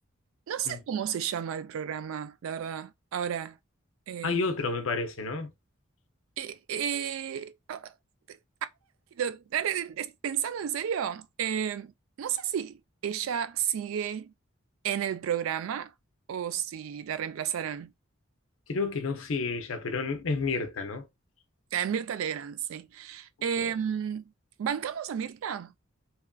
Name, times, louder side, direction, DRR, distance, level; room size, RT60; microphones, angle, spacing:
voice 1, 0.5-3.6 4.1-4.4 6.4-7.9 8.3-8.4 9.2-11.9 12.2-14.3 14.8-15.9 16.3-17.9 21.7-24.2 24.6-25.7, right 8 dB, 75° right, 0.3 m, -32 dB
voice 2, 4.2-5.5 18.7-21.0 23.6-23.7, left 4 dB, 70° left, 0.6 m, -30 dB
3.0 x 2.4 x 2.2 m
head